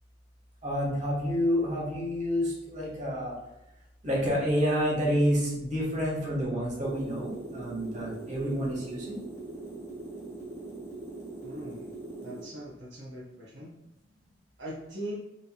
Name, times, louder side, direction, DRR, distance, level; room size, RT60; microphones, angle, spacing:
voice 1, 0.6-3.4 4.0-9.2, equal, 40° right, -4 dB, 0.9 m, -29 dB
sound 1, 6.8-12.5, right 2 dB, 15° left, 0.8 m, -41 dB
voice 2, 11.4-11.9 12.2-13.7 14.6-15.1, right 1 dB, 65° right, -5 dB, 0.6 m, -40 dB
3.1 x 2.7 x 2.2 m, 0.92 s
head